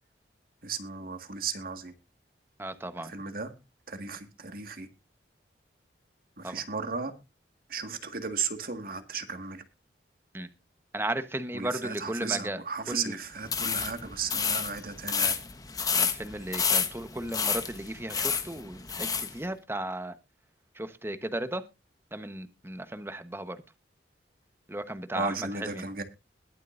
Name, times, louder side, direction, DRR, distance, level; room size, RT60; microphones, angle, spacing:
voice 1, 0.6-1.9 3.0-3.5 3.9-4.9 6.4-7.1 7.7-9.6 11.5-15.4 15.7-16.0 25.1-26.0, right 5 dB, 55° right, 1.8 m, -35 dB
voice 2, 2.6-3.1 6.4-6.6 10.3-10.5 10.9-12.6 12.9-13.1 15.9-20.1 20.7-21.6 22.1-23.6 24.7-25.8, right 1 dB, 15° right, 1.1 m, -35 dB
sound 1, 13.4-19.3, left 6 dB, 20° left, 1.1 m, -29 dB
21.0 x 7.5 x 2.6 m
head